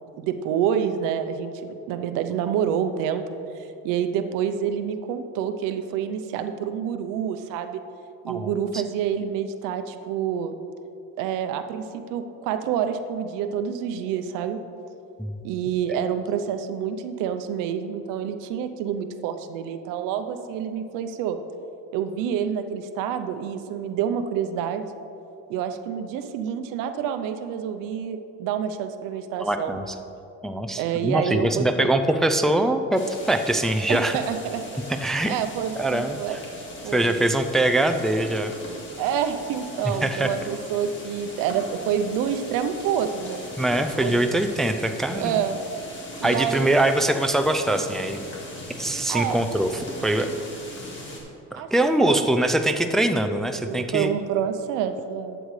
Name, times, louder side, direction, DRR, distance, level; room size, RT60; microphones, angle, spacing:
voice 1, 0.2-3.2 3.6-7.8 8.2-10.5 11.2-14.6 15.4-21.4 21.9-25.0 25.5-29.8 30.7-32.0 33.9-34.6 35.3-36.4 36.8-37.2 39.0-43.4 44.0-44.2 45.1-45.6 46.2-46.7 49.1-49.4 51.6-52.2 53.3-55.4, right 8 dB, 85° right, 8 dB, 0.7 m, -28 dB
voice 2, 8.3-8.8 15.2-15.4 29.4-30.0 30.4-34.2 35.0-35.3 35.8-36.4 36.8-38.5 39.8-40.3 43.6-45.4 46.2-48.2 48.8-50.3 51.5-54.1, right 1 dB, ahead, 6 dB, 0.3 m, -23 dB
sound 1, 32.9-51.2, left 1 dB, 40° left, 1.9 m, -40 dB
12.0 x 8.0 x 3.2 m, 2.8 s
cardioid pair, 120°, 31 cm